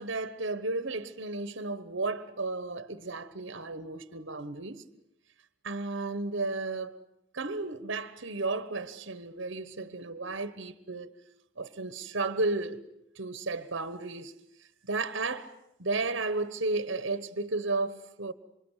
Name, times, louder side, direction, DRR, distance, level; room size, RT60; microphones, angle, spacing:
voice 1, 0.0-4.8 5.6-7.0 7.3-11.1 11.6-12.8 13.2-14.3 14.8-15.5 15.8-18.3, right 3 dB, 60° right, 1.3 m, -33 dB
27.0 x 25.5 x 8.2 m
head